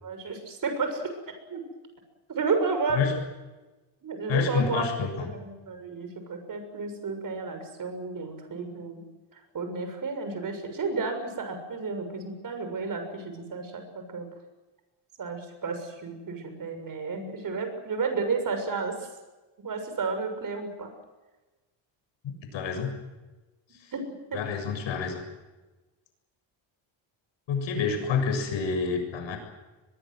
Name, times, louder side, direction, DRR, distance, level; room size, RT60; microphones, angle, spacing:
voice 1, 0.0-1.1 1.5-1.6 2.3-3.0 4.0-4.9 5.2-9.0 9.3-14.3 15.2-19.1 19.6-20.9 23.9-24.4, right 4 dB, 45° right, 7 dB, 6.8 m, -32 dB
voice 2, 4.3-5.3 22.2-23.0 23.7-23.9 24.3-25.2 27.5-29.4, left 5 dB, 70° left, 5 dB, 7.2 m, -28 dB
23.5 x 22.5 x 7.8 m, 1.2 s
cardioid pair, 125°, 47 cm